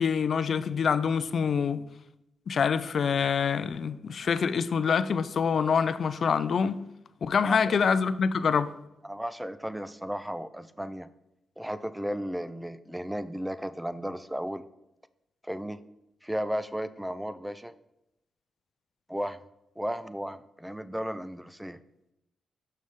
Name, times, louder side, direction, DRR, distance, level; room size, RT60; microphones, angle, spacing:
voice 1, 0.0-1.9 2.5-6.8 7.2-8.7, left 6 dB, 60° left, 14 dB, 0.4 m, -26 dB
voice 2, 7.4-7.8 9.0-11.1 11.6-14.6 15.4-15.8 16.2-17.7 19.1-19.4 19.8-21.8, equal, 5° right, 14 dB, 0.4 m, -34 dB
6.4 x 5.6 x 3.6 m, 0.86 s
cardioid pair, 65°, 0 cm